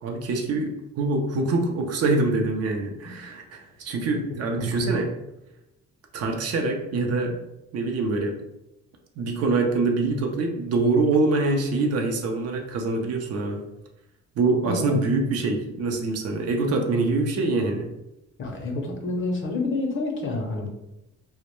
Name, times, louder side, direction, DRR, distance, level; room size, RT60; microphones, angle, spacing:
voice 1, 0.0-5.1 6.1-7.4 7.7-8.4 9.2-13.6 14.4-17.9, right 3 dB, 55° right, 3 dB, 0.5 m, -24 dB
voice 2, 4.7-5.1 14.6-15.0 18.4-20.7, left 2 dB, 45° left, 2 dB, 0.6 m, -28 dB
2.1 x 2.1 x 2.9 m, 0.90 s
cardioid pair, 110°, 29 cm